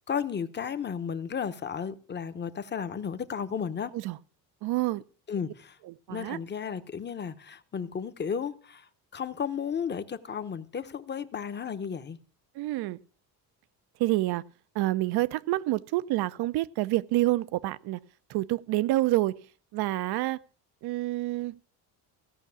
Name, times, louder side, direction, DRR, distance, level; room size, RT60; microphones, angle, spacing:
voice 1, 0.1-3.9 5.3-5.8 6.1-12.2, left 7 dB, 25° left, 0.9 m, -34 dB
voice 2, 4.6-5.0 5.9-6.4 12.5-13.0 14.0-14.4 14.7-18.0 18.3-19.4 19.7-20.4 20.8-21.6, right 17 dB, 70° right, 0.7 m, -28 dB
16.5 x 5.8 x 7.0 m
cardioid pair, 125°, 40 cm